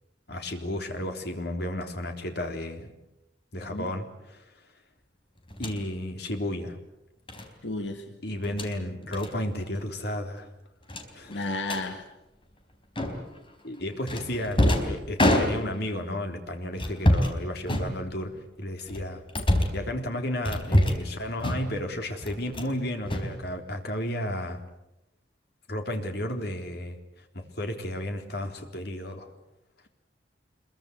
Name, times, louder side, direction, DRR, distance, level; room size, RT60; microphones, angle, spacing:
voice 1, 0.3-2.9 3.5-4.5 5.6-6.8 8.2-10.5 11.1-11.5 13.6-19.2 19.5-24.6 25.7-27.0 27.3-29.3, left 1 dB, 60° left, 4 dB, 3.7 m, -33 dB
sound 1, 5.5-5.8 7.3-7.5 8.4-8.7 9.1-9.3 9.6-9.8 10.1-10.2 10.9-11.8 13.0-13.4 14.1-15.9 16.7-17.4 17.7-18.4 18.9-19.8 20.4-21.1 21.4-21.9 22.2-22.7 23.0-23.9, left 1 dB, 30° left, 4.1 m, -26 dB
voice 2, 7.6-8.0 11.3-12.1, left 2 dB, 90° left, 5 dB, 2.0 m, -32 dB
26.0 x 22.5 x 8.1 m, 0.89 s
head